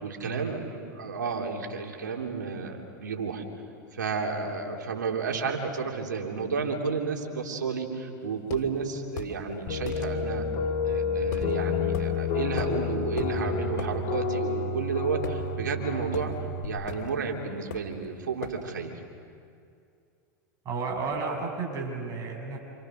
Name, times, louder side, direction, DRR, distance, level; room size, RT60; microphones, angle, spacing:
voice 1, 0.0-3.4 3.9-10.5 10.8-16.3 16.6-18.9, right 5 dB, 90° right, 1 dB, 3.4 m, -32 dB
sound 1, 8.5-8.7 9.2-9.4 9.9-10.1 11.3-11.5 11.9-12.1 12.6-12.8 13.2-13.3 13.8-13.9 15.2-15.8 16.1-16.3 16.9-17.1 17.7-18.0 18.4-18.6, left 10 dB, 70° left, 2.6 m, -38 dB
sound 2, 9.7-16.6, left 5 dB, 50° left, 3.1 m, -30 dB
voice 2, 20.6-22.6, right 4 dB, 35° right, 1 dB, 7.4 m, -32 dB
28.0 x 27.5 x 6.6 m, 2.4 s
hypercardioid pair, 100°, 10 cm